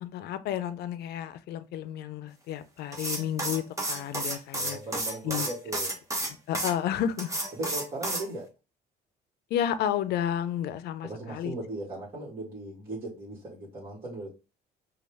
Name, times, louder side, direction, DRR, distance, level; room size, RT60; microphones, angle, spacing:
voice 1, 0.0-4.8 5.2-5.5 6.5-7.4 9.5-11.5, left 10 dB, 70° left, 0.5 m, -31 dB
sound 1, 2.9-6.7 7.2-8.3, right 1 dB, 20° right, 1.1 m, -31 dB
voice 2, 4.6-6.0 7.5-8.5 11.0-14.3, right 2 dB, 35° right, 1.7 m, -38 dB
5.2 x 2.4 x 3.4 m
cardioid pair, 110°, 17 cm